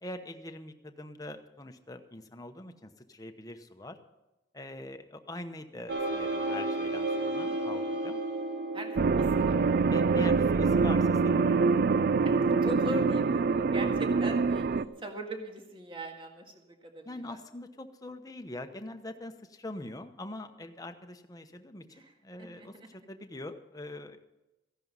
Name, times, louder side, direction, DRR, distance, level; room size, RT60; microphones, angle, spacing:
voice 1, 0.0-4.0 4.5-8.2 9.9-11.6 12.0-12.1 17.0-24.2, left 1 dB, 20° left, 7 dB, 1.0 m, -43 dB
sound 1, 5.9-15.1, right 2 dB, 80° right, 2.2 m, -36 dB
voice 2, 8.7-9.8 12.2-17.4 21.9-22.1 22.4-22.9, right 1 dB, 30° right, 3 dB, 1.8 m, -41 dB
sound 2, 9.0-14.8, right 4 dB, 55° right, 0.4 m, -25 dB
15.0 x 11.0 x 5.5 m, 0.98 s
head